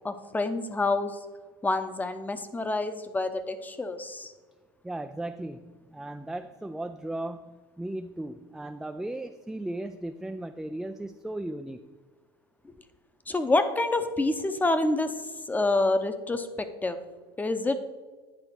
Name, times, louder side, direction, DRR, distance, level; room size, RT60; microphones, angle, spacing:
voice 1, 0.0-1.2 1.6-4.3 13.3-15.1 15.5-17.0 17.4-17.8, left 2 dB, 15° left, 10 dB, 0.8 m, -27 dB
voice 2, 4.8-11.8, right 1 dB, 5° right, 8 dB, 0.3 m, -36 dB
9.9 x 3.8 x 6.0 m, 1.4 s
hypercardioid pair, 90°, 13 cm